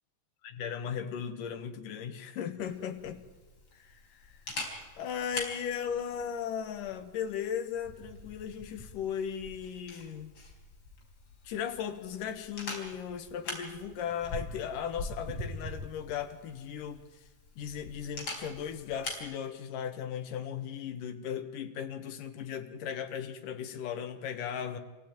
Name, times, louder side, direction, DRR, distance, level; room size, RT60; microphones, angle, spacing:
voice 1, 0.6-3.2 3.7-4.0 5.0-10.3 11.4-17.0 17.6-24.8, left 8 dB, 80° left, 3.0 m, -37 dB
Camera, 2.6-19.3, left 2 dB, 45° left, 5.1 m, -44 dB
26.5 x 16.5 x 8.9 m
omnidirectional pair, 3.8 m